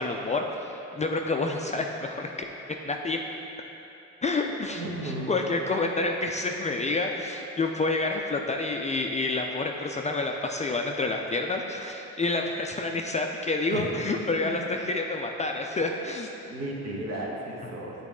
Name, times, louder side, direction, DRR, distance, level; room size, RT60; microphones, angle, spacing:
voice 1, 0.0-2.3 2.9-3.2 4.2-16.3 17.6-17.7, left 3 dB, 25° left, 2 dB, 0.4 m, -28 dB
voice 2, 4.7-5.3 13.7-13.9 14.4-14.6 16.5-17.9, right 2 dB, 55° right, -3 dB, 1.4 m, -34 dB
8.2 x 4.0 x 3.6 m, 2.9 s
cardioid pair, 90°, 30 cm